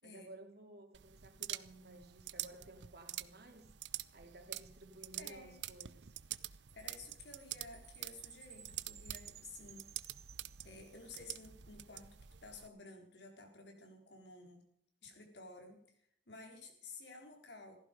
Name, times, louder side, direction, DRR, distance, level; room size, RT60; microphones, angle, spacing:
voice 1, 0.0-3.7 4.1-6.2, right 2 dB, 65° right, 4 dB, 3.0 m, -55 dB
sound 1, 0.9-12.7, right 13 dB, 90° right, 0.7 m, -47 dB
voice 2, 5.2-5.6 6.7-9.9 10.6-12.1 12.4-14.6 15.0-15.8 16.3-17.8, left 3 dB, 70° left, 3 dB, 4.0 m, -53 dB
Chime, 6.7-11.2, right 10 dB, 40° right, 1.3 m, -58 dB
16.5 x 15.0 x 5.2 m, 0.68 s
head